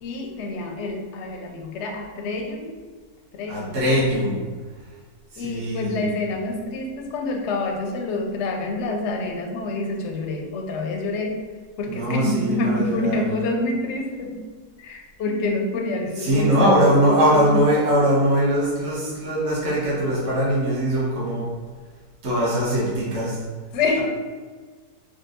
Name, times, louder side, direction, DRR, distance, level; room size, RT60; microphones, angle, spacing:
voice 1, 0.0-2.7 3.3-3.8 4.0-4.2 5.4-11.4 11.8-14.4 14.8-16.8 17.0-17.1 17.5-17.6 23.7-24.0, left 2 dB, 65° left, 2 dB, 0.7 m, -27 dB
voice 2, 3.5-4.4 5.3-6.0 11.9-13.3 16.1-21.5 22.2-23.4 24.0-24.1, right 1 dB, 50° right, -8 dB, 1.3 m, -21 dB
3.7 x 2.3 x 3.8 m, 1.5 s
omnidirectional pair, 1.6 m